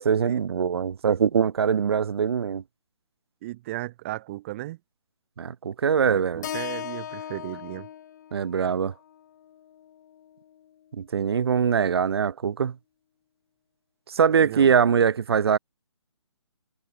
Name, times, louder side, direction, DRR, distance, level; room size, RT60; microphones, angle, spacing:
voice 1, 0.0-2.6 5.4-6.5 8.3-8.9 10.9-12.8 14.1-15.6, right 7 dB, 55° right, 0.4 m, -22 dB
voice 2, 3.4-4.8 6.0-7.9 14.3-14.7, right 16 dB, 25° right, 1.6 m, -35 dB
Keyboard (musical), 6.4-10.7, left 10 dB, 35° left, 1.7 m, -39 dB
figure-of-eight pair, 145°, 16 cm